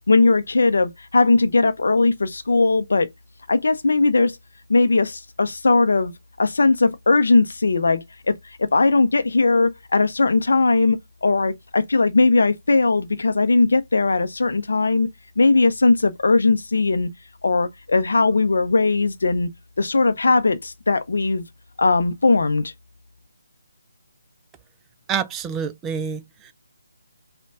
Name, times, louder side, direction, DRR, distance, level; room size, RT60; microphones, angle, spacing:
voice 1, 0.1-3.1 3.5-4.4 4.7-6.1 6.4-15.1 15.4-17.1 17.4-19.5 19.8-21.4 21.8-22.7, left 3 dB, 55° left, 0.5 m, -19 dB
voice 2, 25.1-26.5, right 7 dB, 10° right, 0.4 m, -27 dB
5.2 x 2.2 x 3.6 m
figure-of-eight pair, 145°, 0 cm